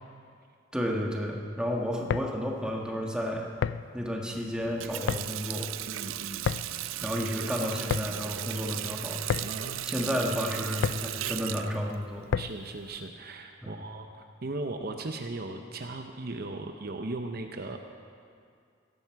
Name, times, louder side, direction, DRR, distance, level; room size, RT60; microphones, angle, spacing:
voice 1, 0.7-3.5 3.9-5.7 7.0-9.2 9.8-12.3 13.6-13.9, equal, 5° right, -1 dB, 1.3 m, -32 dB
sound 1, 1.9-12.8, left 7 dB, 60° left, 0.3 m, -35 dB
Water tap faucet, 4.6-13.1, right 13 dB, 85° right, 0.4 m, -37 dB
voice 2, 5.8-6.5 9.4-9.9 12.4-14.1 14.4-17.8, right 2 dB, 50° right, 5 dB, 0.7 m, -37 dB
16.5 x 12.5 x 4.7 m, 2.3 s
head